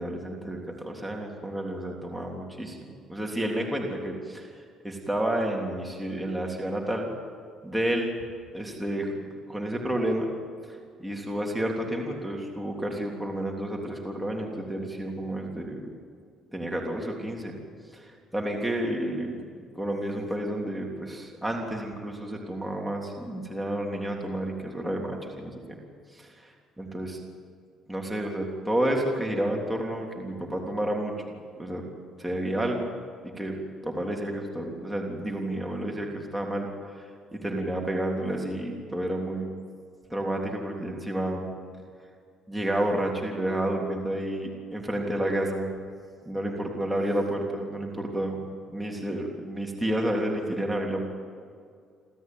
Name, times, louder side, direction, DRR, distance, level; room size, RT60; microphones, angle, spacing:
voice 1, 0.0-7.1 7.6-8.1 8.5-10.3 10.7-15.9 16.5-17.5 17.9-19.4 19.7-25.8 26.1-27.2 27.9-31.1 31.6-31.8 32.2-37.0 37.3-39.5 40.1-41.5 42.5-45.7 46.2-48.4 48.7-51.0, right 1 dB, 5° right, -1 dB, 3.5 m, -30 dB
28.5 x 13.5 x 9.4 m, 2.2 s
cardioid pair, 120°, 0 cm